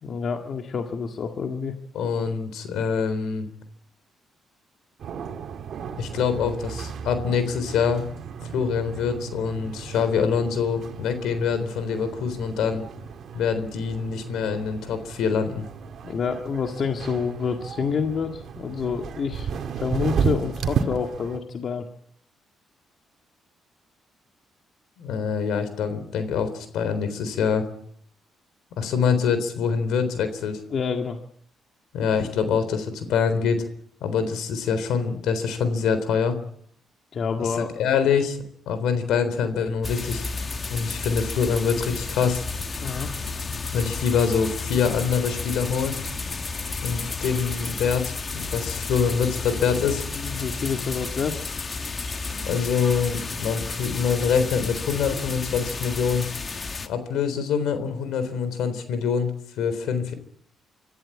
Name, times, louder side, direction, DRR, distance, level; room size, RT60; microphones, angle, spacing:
voice 1, 0.0-1.8 16.0-21.9 30.7-31.2 37.1-37.7 42.8-43.1 50.2-51.4, left 5 dB, 55° left, 4 dB, 2.0 m, -28 dB
voice 2, 1.9-3.5 6.0-8.0 8.5-12.8 13.3-15.6 25.0-27.7 28.7-30.6 31.9-33.7 34.0-36.4 37.4-38.4 38.7-40.3 40.7-42.4 43.7-46.0 46.8-50.0 52.3-56.3 56.9-60.1, left 6 dB, 85° left, 11 dB, 3.8 m, -25 dB
sound 1, 5.0-21.4, right 7 dB, 65° right, 2.2 m, -33 dB
sound 2, 39.8-56.9, left 4 dB, 35° left, 1.6 m, -32 dB
25.5 x 14.0 x 8.6 m, 0.67 s
cardioid pair, 90°, 0 cm